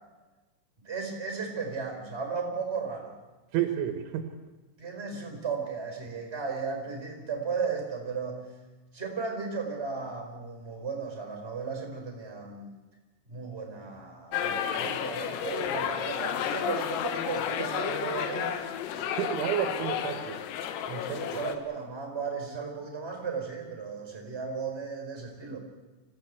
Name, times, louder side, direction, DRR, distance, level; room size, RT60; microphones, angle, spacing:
voice 1, 0.8-3.2 4.8-8.5 8.9-12.7 13.3-18.5 21.0-25.6, right 5 dB, 15° right, 3 dB, 4.1 m, -35 dB
voice 2, 3.5-4.3 19.2-20.4 20.9-21.4, right 10 dB, 75° right, 7 dB, 3.4 m, -31 dB
sound 1, 14.3-21.6, left 9 dB, 90° left, 4.0 m, -32 dB
26.0 x 15.5 x 8.2 m, 1.2 s
omnidirectional pair, 5.8 m